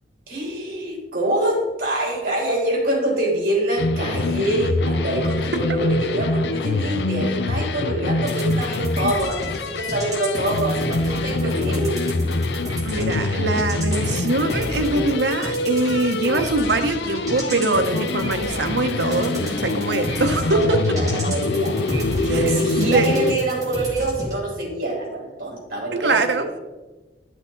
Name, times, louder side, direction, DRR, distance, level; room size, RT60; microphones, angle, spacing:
voice 1, 0.3-12.0 20.4-26.6, right 1 dB, 50° right, -2 dB, 3.2 m, -25 dB
sound 1, 3.8-23.3, left 2 dB, 70° left, 0.5 m, -25 dB
sound 2, 8.2-24.4, equal, 20° right, 2.5 m, -33 dB
voice 2, 12.8-20.8 22.4-23.1 25.9-26.5, right 2 dB, 75° right, 7 dB, 0.9 m, -22 dB
11.0 x 6.1 x 3.9 m, 1.2 s
head